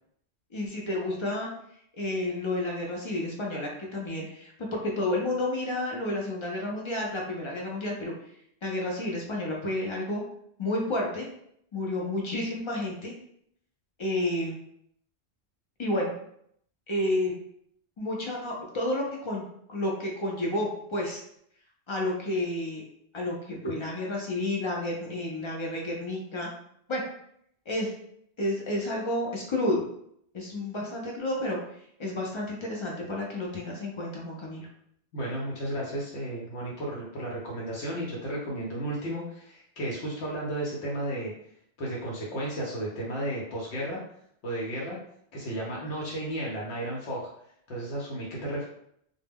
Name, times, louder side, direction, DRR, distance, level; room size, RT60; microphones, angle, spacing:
voice 1, 0.5-1.5 2.0-8.1 8.6-10.2 10.6-11.3 11.7-13.1 14.0-14.6 15.8-16.1 16.9-17.4 18.0-21.2 21.9-22.8 23.1-26.5 26.9-27.0 27.7-27.9 28.4-29.8 30.3-31.6 32.0-34.7, left 1 dB, 50° left, -2 dB, 0.3 m, -30 dB
voice 2, 35.1-41.3 41.8-44.0 44.4-45.0 45.3-47.3 47.7-48.7, right 1 dB, 75° left, -4 dB, 0.9 m, -33 dB
2.1 x 2.1 x 3.4 m, 0.71 s
omnidirectional pair, 1.1 m